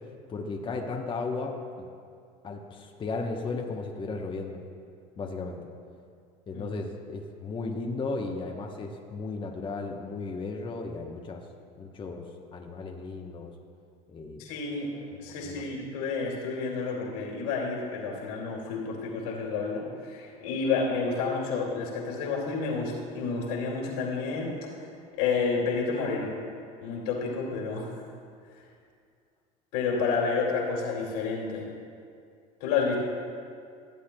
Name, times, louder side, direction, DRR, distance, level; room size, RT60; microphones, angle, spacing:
voice 1, 0.3-1.9 2.4-4.6 5.2-5.6 6.5-11.4 11.8-12.2 12.5-13.5 14.1-14.4 15.4-15.6, left 3 dB, 25° left, 1 dB, 0.9 m, -35 dB
voice 2, 14.4-14.9 15.2-24.5 25.2-26.3 26.8-27.9 29.7-31.6 32.6-33.0, left 4 dB, 80° left, -3 dB, 2.4 m, -30 dB
15.5 x 8.4 x 2.2 m, 2.3 s
supercardioid pair, 100°, 19 cm